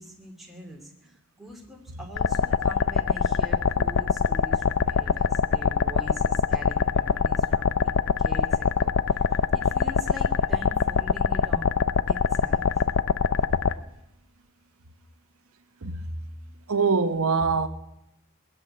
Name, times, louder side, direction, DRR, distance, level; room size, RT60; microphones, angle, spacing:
voice 1, 0.0-7.9 8.2-9.3 9.5-11.8 12.1-12.7, equal, ahead, 2.7 m, -43 dB
sound 1, 2.2-13.7, left 6 dB, 60° left, 0.5 m, -23 dB
voice 2, 15.8-16.2 16.7-17.7, right 4 dB, 70° right, 0.9 m, -24 dB
19.5 x 8.1 x 8.7 m
head